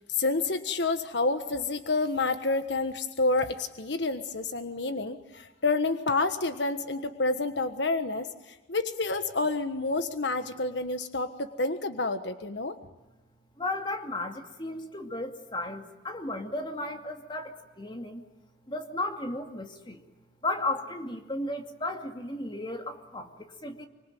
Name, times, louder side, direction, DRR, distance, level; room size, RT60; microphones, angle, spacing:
voice 1, 0.1-12.8, left 3 dB, 80° left, 9 dB, 1.4 m, -29 dB
voice 2, 13.6-18.2 18.7-20.0 20.4-23.9, left 2 dB, 30° left, 5 dB, 2.4 m, -34 dB
25.5 x 25.5 x 9.2 m, 1.1 s
head